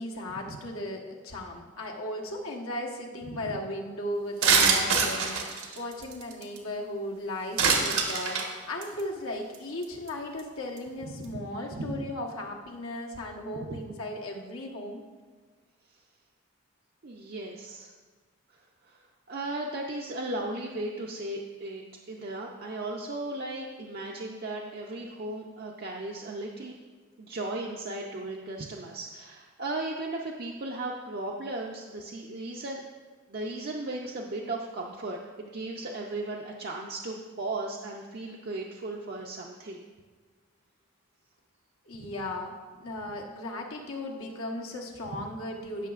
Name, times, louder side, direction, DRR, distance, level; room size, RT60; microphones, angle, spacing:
voice 1, 0.0-15.0 41.8-45.9, left 1 dB, 75° left, 0 dB, 1.2 m, -36 dB
sound 1, 4.4-6.6 7.6-8.5 8.8-9.0 9.5-9.6 9.8-10.1 10.4-10.5, right 5 dB, 85° right, 1.2 m, -24 dB
voice 2, 11.1-12.0 13.7-13.8 17.0-17.9 18.9-19.0 19.3-26.7 27.2-32.8 33.3-39.8 42.0-42.1, right 2 dB, 45° right, -1 dB, 0.5 m, -36 dB
14.0 x 6.2 x 2.5 m, 1.4 s
head